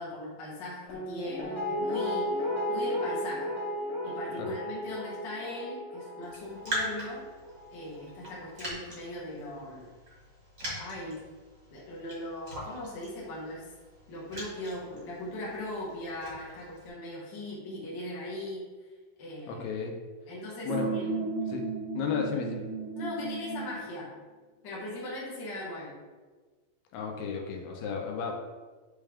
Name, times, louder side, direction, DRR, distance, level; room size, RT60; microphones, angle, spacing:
voice 1, 0.0-3.5 4.0-7.3 7.7-9.9 10.8-11.2 11.7-13.6 14.1-18.7 19.2-19.6 20.3-21.1 22.9-24.1 24.6-26.0, left 1 dB, 45° left, -6 dB, 1.6 m, -39 dB
Guitar, 0.9-7.9 8.2-8.3, left 1 dB, 65° left, 3.0 m, -34 dB
Raindrop, 6.2-16.9, right 1 dB, 35° right, 1.3 m, -42 dB
voice 2, 19.5-20.0 20.7-20.9 21.5-21.7 21.9-22.6 26.9-28.3, left 6 dB, 85° left, 2 dB, 2.6 m, -33 dB
sound 1, 20.7-23.9, right 4 dB, 85° right, 3.0 m, -34 dB
8.4 x 3.5 x 3.5 m, 1.4 s
omnidirectional pair, 4.4 m